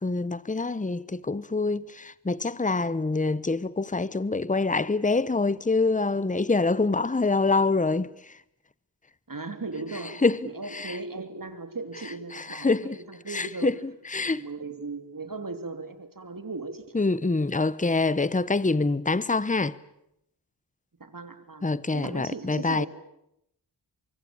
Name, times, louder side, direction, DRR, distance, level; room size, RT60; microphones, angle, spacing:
voice 1, 0.0-8.1 10.2-10.9 12.3-13.0 13.3-13.7 14.1-14.4 16.9-19.8 21.6-22.9, left 3 dB, 15° left, 1.0 m, -25 dB
voice 2, 9.3-13.7 14.2-16.8 21.0-22.9, right 3 dB, 45° right, 3.3 m, -37 dB
24.0 x 24.0 x 8.8 m
cardioid pair, 50°, 44 cm